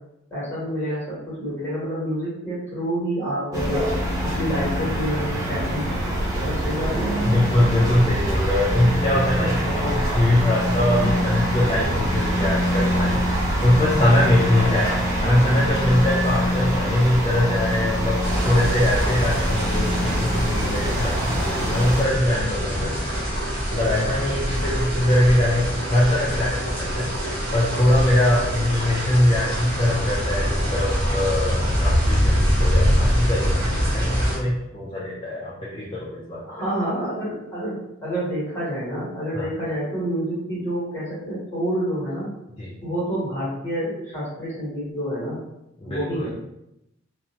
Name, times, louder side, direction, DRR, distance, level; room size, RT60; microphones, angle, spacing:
voice 1, 0.3-3.8 4.2-7.3 36.5-42.3 42.8-45.4 45.8-46.3, right 1 dB, 10° left, -9 dB, 1.4 m, -28 dB
sound 1, 3.5-22.0, equal, 15° right, 0.6 m, -24 dB
voice 2, 7.2-23.2 23.7-27.1 27.5-33.7 33.9-36.4 39.3-39.5 42.6-42.7 45.8-46.3, left 1 dB, 30° left, -5 dB, 0.4 m, -22 dB
sound 2, 18.2-34.4, equal, 50° right, 0.9 m, -24 dB
2.7 x 2.0 x 2.8 m, 0.85 s
head